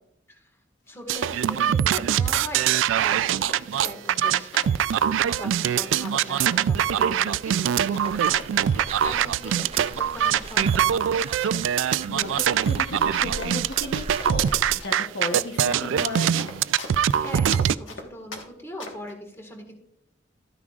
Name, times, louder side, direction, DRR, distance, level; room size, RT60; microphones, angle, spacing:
Run, 0.9-18.5 18.8-19.1, left 2 dB, 85° left, 1.5 m, -41 dB
voice 1, 0.9-2.7 3.0-11.0 16.9-19.8, equal, 15° left, 3 dB, 1.6 m, -41 dB
sound 1, 1.1-17.8, right 9 dB, 90° right, 0.3 m, -23 dB
sound 2, 8.0-14.8, right 3 dB, 30° right, 0.5 m, -39 dB
voice 2, 12.1-16.5, left 2 dB, 65° left, 4 dB, 1.0 m, -34 dB
12.5 x 9.6 x 2.4 m, 0.77 s
head